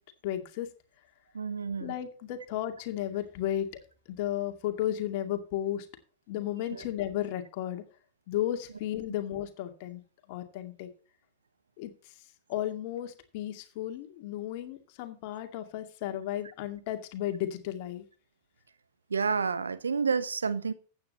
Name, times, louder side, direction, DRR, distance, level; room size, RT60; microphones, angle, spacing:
voice 1, 0.2-0.7 1.8-3.7 4.1-5.9 6.3-7.8 8.3-10.0 10.3-10.9 11.8-12.1 12.5-18.0, left 12 dB, 45° left, 2.2 m, -34 dB
voice 2, 1.3-1.9 6.7-6.9 19.1-20.7, right 5 dB, 75° right, 1.1 m, -29 dB
15.0 x 9.0 x 3.1 m
figure-of-eight pair, 90°, 0 cm